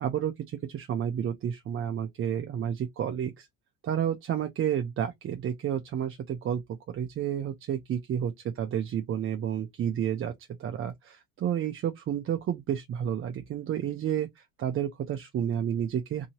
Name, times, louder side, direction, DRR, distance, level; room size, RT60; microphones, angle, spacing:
voice 1, 0.0-3.5 3.8-6.6 6.9-10.3 10.6-16.3, right 9 dB, 35° right, 0.5 m, -30 dB
2.8 x 2.7 x 2.8 m
supercardioid pair, 105°, 40 cm